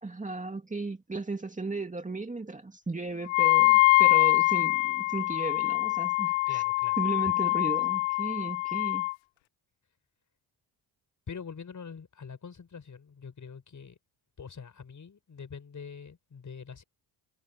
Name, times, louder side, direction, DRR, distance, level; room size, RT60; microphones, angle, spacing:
voice 1, 0.0-6.6 7.0-9.1, right 3 dB, 15° right, 2.4 m, -35 dB
Wind instrument woodwind instrument, 3.3-9.1, left 24 dB, 85° left, 0.6 m, -24 dB
voice 2, 6.5-7.0 11.3-14.0 14.4-16.8, left 6 dB, 40° left, 6.9 m, -44 dB
cardioid pair, 80°, 45 cm